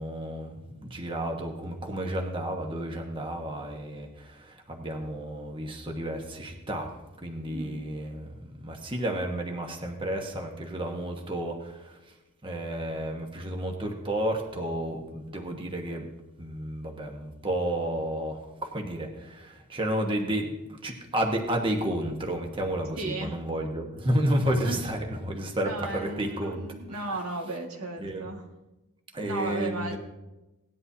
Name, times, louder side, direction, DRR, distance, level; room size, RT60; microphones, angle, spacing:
voice 1, 0.0-6.9 7.2-12.1 12.4-16.1 16.4-27.0 28.0-28.3 29.1-30.0, right 1 dB, 25° right, 1 dB, 1.3 m, -31 dB
voice 2, 7.5-7.8 23.0-23.4 24.6-24.8 25.6-28.4 29.2-30.0, right 2 dB, 80° right, 1 dB, 1.9 m, -35 dB
17.5 x 11.0 x 2.8 m, 1.0 s
head